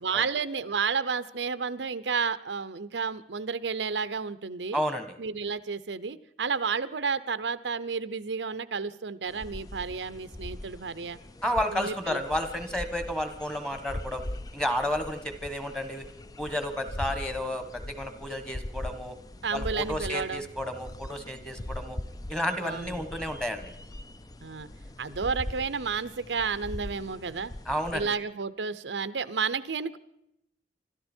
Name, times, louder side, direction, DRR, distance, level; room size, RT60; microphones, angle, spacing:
voice 1, 0.0-4.8 5.2-11.2 11.7-12.2 19.4-20.4 22.5-23.0 24.4-24.7 25.0-27.5 27.9-30.0, right 5 dB, 85° right, 13 dB, 0.7 m, -31 dB
voice 2, 4.7-5.1 11.4-14.2 14.5-16.0 16.4-19.1 19.5-22.0 22.3-23.7 27.7-28.0, equal, 5° left, 8 dB, 1.4 m, -31 dB
sound 1, 9.3-28.1, left 1 dB, 20° left, 0.5 m, -41 dB
25.5 x 13.0 x 4.4 m, 0.78 s
head